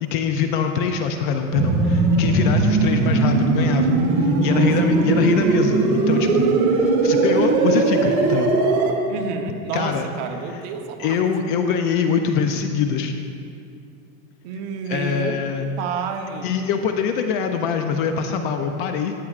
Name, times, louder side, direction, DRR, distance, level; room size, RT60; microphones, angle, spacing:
voice 1, 0.0-8.6 9.7-10.1 11.0-13.1 14.9-15.7 16.4-19.1, left 6 dB, 40° left, 6 dB, 0.4 m, -23 dB
sound 1, 1.5-8.9, right 3 dB, 70° right, 1.8 m, -19 dB
voice 2, 2.5-2.9 4.4-5.9 9.1-11.2 14.4-15.4 15.8-16.5, right 5 dB, 50° right, 4 dB, 0.9 m, -31 dB
14.0 x 9.8 x 2.4 m, 2.5 s
supercardioid pair, 155°, 44 cm